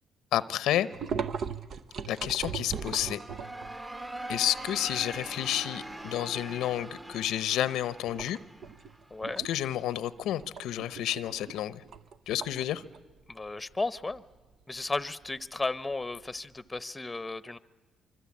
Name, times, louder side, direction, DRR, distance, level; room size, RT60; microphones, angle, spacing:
voice 1, 0.3-0.9 2.1-3.2 4.3-8.4 9.4-11.8 12.3-12.8, left 12 dB, 85° left, 16 dB, 0.8 m, -30 dB
sound 1, 0.9-3.8 4.3-4.4 4.8-5.9 6.4-6.6 7.0-7.5 8.0-16.8, right 6 dB, 60° right, 0.9 m, -39 dB
sound 2, 2.6-9.4, right 1 dB, 20° right, 1.3 m, -42 dB
voice 2, 9.1-9.4 13.3-14.2 14.7-17.6, left 3 dB, 15° left, 16 dB, 0.9 m, -34 dB
25.0 x 24.5 x 8.6 m, 1.3 s
cardioid pair, 90°, 0 cm